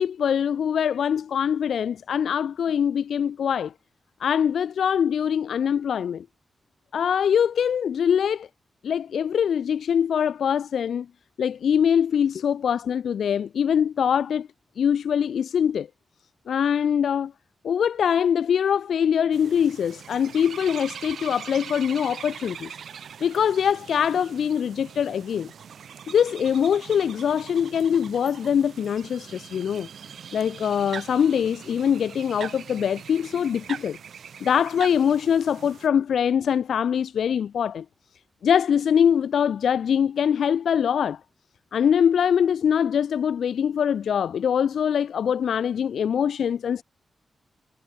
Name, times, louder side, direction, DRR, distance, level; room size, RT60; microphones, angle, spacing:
voice 1, 0.0-3.7 4.2-6.3 6.9-8.5 8.8-11.1 11.4-14.5 14.8-15.9 16.5-17.3 17.6-22.8 23.2-25.5 26.1-29.9 30.3-34.0 34.4-37.8 38.4-41.2 41.7-46.8, left 8 dB, 85° left, 0.7 m, -23 dB
sound 1, 19.3-35.9, right 7 dB, 70° right, 3.1 m, -41 dB
wide cardioid pair, 165°, 0 cm